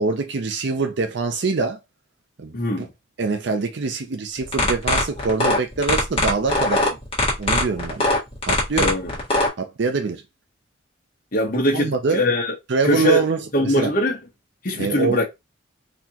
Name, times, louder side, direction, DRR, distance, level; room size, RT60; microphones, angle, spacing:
voice 1, 0.0-1.8 2.4-2.9 3.2-7.0 7.4-8.1 8.4-9.0 9.6-10.2 11.7-12.2 12.7-13.9 14.8-15.2, right 4 dB, 60° right, 0.5 m, -24 dB
voice 2, 2.5-2.9 8.7-9.1 11.3-12.5 12.8-13.2 13.5-14.2 14.6-15.2, left 1 dB, 45° left, 1.2 m, -21 dB
sound 1, 4.4-9.5, left 2 dB, 30° left, 1.5 m, -20 dB
4.1 x 2.9 x 2.8 m
head